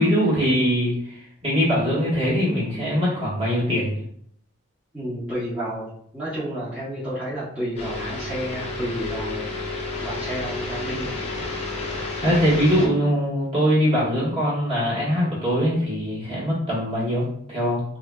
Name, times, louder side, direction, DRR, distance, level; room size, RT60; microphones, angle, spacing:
voice 1, 0.0-3.9 12.2-17.8, equal, 30° right, -7 dB, 1.3 m, -22 dB
voice 2, 4.9-9.5 10.0-11.2, equal, 5° right, -12 dB, 0.8 m, -31 dB
sound 1, 7.8-12.9, left 2 dB, 30° left, 0.6 m, -31 dB
3.1 x 2.5 x 2.2 m, 0.66 s
head